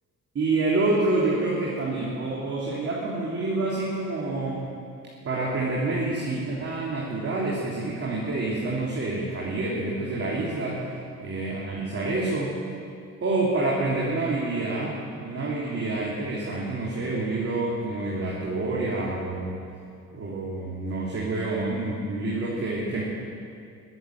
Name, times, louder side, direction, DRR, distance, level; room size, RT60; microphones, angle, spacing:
voice 1, 0.3-4.7 5.2-10.9 11.2-12.5 13.2-19.6 20.1-23.0, right 2 dB, 50° right, -5 dB, 3.3 m, -27 dB
22.5 x 7.9 x 7.9 m, 2.5 s
cardioid pair, 90°, 30 cm